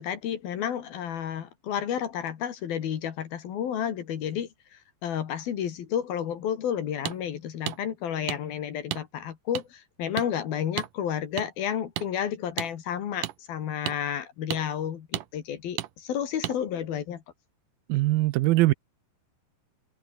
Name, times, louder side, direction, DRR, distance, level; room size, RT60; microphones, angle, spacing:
voice 1, 0.0-17.2, left 9 dB, 60° left, 3.6 m, -31 dB
sound 1, 7.1-7.2 7.7-7.8 8.3-8.4 8.9-9.0 9.5-9.6 10.2-10.3 10.8-10.9 11.4-11.5 12.0-12.1 12.6-12.7 13.2-13.3 13.9-14.0 14.5-14.6 15.1-15.3 15.8-15.9 16.4-16.6, right 14 dB, 70° right, 2.2 m, -32 dB
voice 2, 17.9-18.7, right 19 dB, 85° right, 2.1 m, -21 dB
omnidirectional pair, 5.1 m